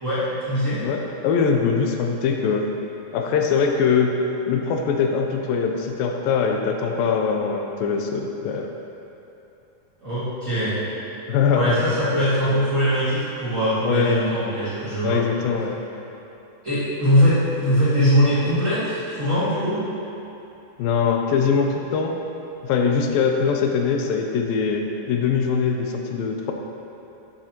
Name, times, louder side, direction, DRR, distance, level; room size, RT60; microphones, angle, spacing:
voice 1, 0.0-0.8 10.0-10.8 11.5-15.2 16.6-19.8, equal, 30° right, -13 dB, 1.6 m, -21 dB
voice 2, 0.8-2.7 3.1-4.1 4.5-8.7 11.3-12.0 13.8-14.3 15.0-15.8 20.8-22.1 22.6-26.5, left 6 dB, 85° left, 3 dB, 2.4 m, -22 dB
12.5 x 7.5 x 3.0 m, 2.9 s
omnidirectional pair, 4.1 m